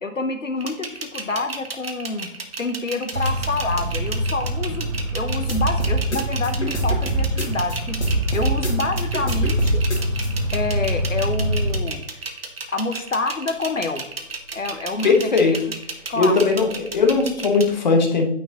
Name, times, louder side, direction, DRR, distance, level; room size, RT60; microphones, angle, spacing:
voice 1, 0.0-2.3 2.6-8.0 8.3-9.8 10.5-12.4 12.7-14.1 14.5-15.2 15.4-15.6 16.1-16.4, left 3 dB, 80° left, 7 dB, 0.9 m, -27 dB
sound 1, 0.6-17.7, right 4 dB, 50° right, 1.2 m, -33 dB
sound 2, 3.1-11.8, equal, 85° right, 1.1 m, -25 dB
sound 3, 5.5-7.8 8.0-10.3, right 2 dB, 60° left, 2.1 m, -24 dB
voice 2, 15.0-15.5 16.2-18.3, left 4 dB, 35° left, 3 dB, 1.3 m, -18 dB
9.0 x 6.1 x 2.9 m, 0.74 s
figure-of-eight pair, 145°, 38 cm